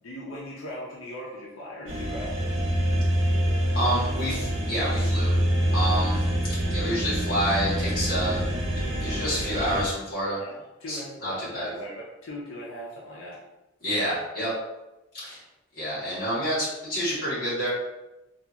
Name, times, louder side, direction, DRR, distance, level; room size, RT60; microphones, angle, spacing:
voice 1, 0.0-2.4 10.4-13.4, equal, 90° left, -5 dB, 0.6 m, -39 dB
sound 1, 1.9-9.9, equal, 65° right, 0.5 m, -26 dB
voice 2, 3.7-5.3 5.7-6.2 6.7-8.4 9.0-10.4 10.9-11.7 13.8-14.5 15.1-15.4 15.7-17.7, equal, 50° left, -7 dB, 1.3 m, -28 dB
2.8 x 2.4 x 2.4 m, 0.99 s
head